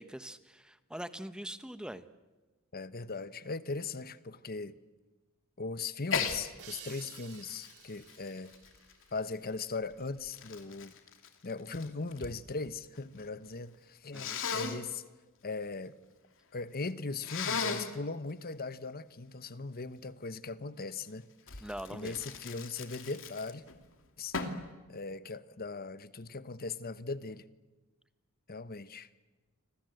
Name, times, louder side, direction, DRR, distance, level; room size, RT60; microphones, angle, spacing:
voice 1, 0.0-2.0 14.1-14.4 21.6-22.1, right 1 dB, 5° right, 1.1 m, -43 dB
voice 2, 2.7-4.8 5.6-8.5 9.1-10.9 11.4-15.0 15.4-15.9 16.5-23.6 24.2-24.4 24.9-27.4 28.5-29.1, left 3 dB, 45° left, 1.1 m, -39 dB
Sneeze, 6.1-6.4 6.9-9.2 9.9-12.4 12.7-13.3 14.1-14.8 17.2-18.0 21.5-23.8 24.3-24.7, left 5 dB, 60° left, 2.8 m, -37 dB
sound 1, 6.6-10.0, right 8 dB, 75° right, 3.6 m, -53 dB
29.5 x 25.5 x 8.0 m
head